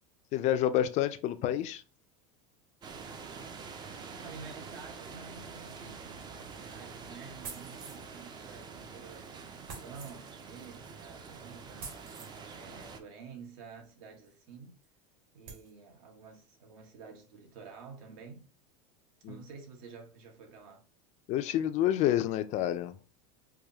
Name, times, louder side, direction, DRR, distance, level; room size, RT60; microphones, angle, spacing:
voice 1, 0.3-1.8 19.2-19.4 21.3-22.9, left 12 dB, 40° left, 0.4 m, -28 dB
sound 1, 2.8-13.0, right 5 dB, 25° right, 0.4 m, -46 dB
voice 2, 4.2-14.8 15.3-18.5 19.3-20.8, right 5 dB, 70° right, 1.3 m, -50 dB
sound 2, 7.4-8.1 9.7-10.2 11.8-12.3 14.3-14.4 14.8-14.9 15.5-15.7, right 5 dB, 50° right, 1.5 m, -45 dB
4.7 x 2.2 x 2.8 m
supercardioid pair, 135°, 19 cm